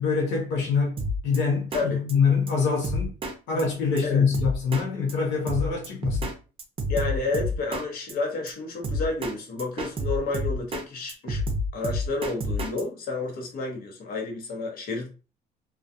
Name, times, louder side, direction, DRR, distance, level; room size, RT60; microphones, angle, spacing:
voice 1, 0.0-3.1 3.5-6.3, left 5 dB, 85° left, 0.8 m, -25 dB
Drum kit, 1.0-1.4 1.7-1.8 2.1-2.2 2.5-2.6 2.8-3.3 3.6-3.7 4.0-4.1 4.3-4.8 5.1-5.2 5.5-6.3 6.6-7.8 8.1-8.2 8.5-8.6 8.8-9.3 9.6-10.8 11.1-12.8, left 1 dB, 35° right, 0.5 m, -29 dB
voice 2, 6.9-11.4 11.7-15.1, left 3 dB, 60° left, 0.9 m, -30 dB
2.3 x 2.3 x 2.6 m
cardioid pair, 110°, 17 cm